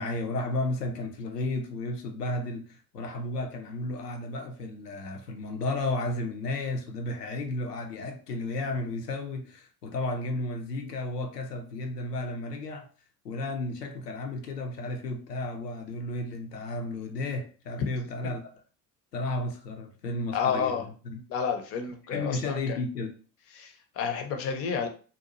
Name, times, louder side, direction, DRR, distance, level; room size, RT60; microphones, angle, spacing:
voice 1, 0.0-12.9 13.2-18.5 19.1-21.2 22.1-23.1, left 2 dB, 80° left, 0.6 m, -33 dB
voice 2, 20.3-20.8 21.3-22.8 23.6-24.9, left 6 dB, 30° left, 0.5 m, -30 dB
2.7 x 2.2 x 2.8 m
figure-of-eight pair, 65°, 48 cm